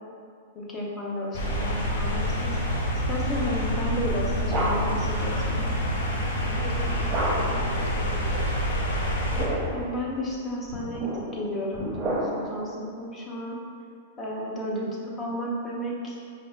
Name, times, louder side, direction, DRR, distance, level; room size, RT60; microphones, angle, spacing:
voice 1, 0.5-2.5 3.1-5.7 9.7-13.6 14.2-16.2, equal, 20° left, -3 dB, 0.7 m, -32 dB
sound 1, 1.3-9.5, equal, 65° left, 0.6 m, -27 dB
sound 2, 4.4-5.1 7.1-7.7 9.1-9.9 10.7-12.6, right 1 dB, 25° right, 0.8 m, -30 dB
voice 2, 6.4-8.5 14.6-14.9, right 4 dB, 45° right, 3 dB, 0.4 m, -41 dB
5.2 x 2.4 x 2.3 m, 2.3 s
hypercardioid pair, 115°, 0 cm